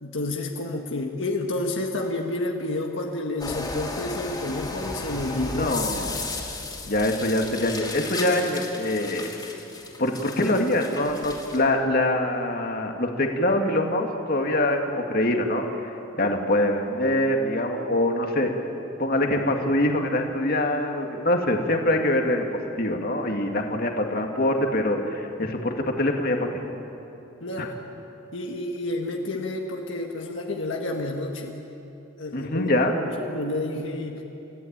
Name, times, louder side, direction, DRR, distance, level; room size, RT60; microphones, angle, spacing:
voice 1, 0.0-5.8 27.4-27.7 28.3-31.6 32.2-34.2, left 2 dB, 70° left, 1 dB, 1.8 m, -30 dB
sound 1, 3.4-11.6, left 3 dB, 20° left, 3.1 m, -35 dB
voice 2, 5.6-6.3 6.9-9.3 10.0-18.5 19.0-22.5 22.8-26.6 27.6-27.7 32.3-33.0, left 1 dB, 50° left, 3 dB, 2.1 m, -24 dB
30.0 x 15.0 x 8.8 m, 3.0 s
head